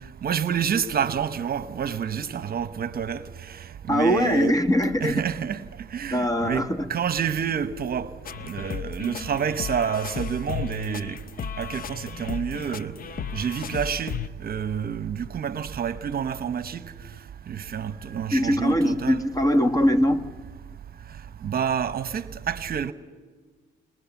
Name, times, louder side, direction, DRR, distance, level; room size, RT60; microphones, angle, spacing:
voice 1, 0.2-3.2 3.9-4.6 5.0-5.6 5.9-8.1 8.5-11.1 11.6-12.9 13.3-16.8 17.5-19.2 21.4-22.9, right 8 dB, 50° right, 1.0 m, -28 dB
voice 2, 3.9-5.2 6.1-6.9 18.3-20.2, equal, 15° left, 1.2 m, -22 dB
sound 1, 8.2-14.3, left 8 dB, 45° left, 0.6 m, -34 dB
29.5 x 19.0 x 7.1 m
cardioid pair, 90°, 20 cm